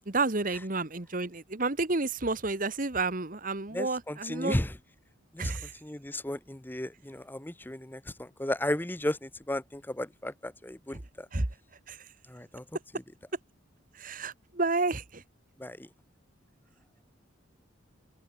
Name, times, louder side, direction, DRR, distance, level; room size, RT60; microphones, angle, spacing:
voice 1, 0.1-4.6 5.4-5.7 11.3-11.5 11.9-12.0 14.0-15.2, right 3 dB, 40° right, 1.4 m, -30 dB
voice 2, 3.7-4.8 5.3-5.5 5.8-11.3 12.3-12.6 15.6-15.9, left 1 dB, 10° left, 0.7 m, -34 dB
open air
head